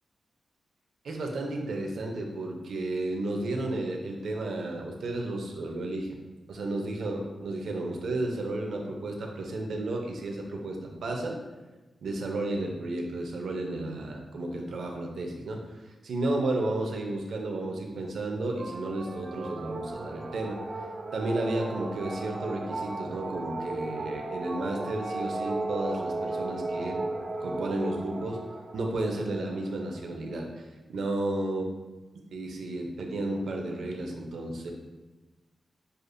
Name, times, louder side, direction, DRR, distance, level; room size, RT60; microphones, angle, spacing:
voice 1, 1.0-6.1 6.5-11.4 12.0-15.7 16.0-20.6 21.1-27.0 27.4-28.4 28.7-31.6 32.3-34.7, right 2 dB, 75° right, 2 dB, 0.6 m, -32 dB
sound 1, 18.5-30.4, right 2 dB, 30° right, 0.3 m, -36 dB
6.4 x 2.4 x 2.5 m, 1.2 s
wide cardioid pair, 175°, 0 cm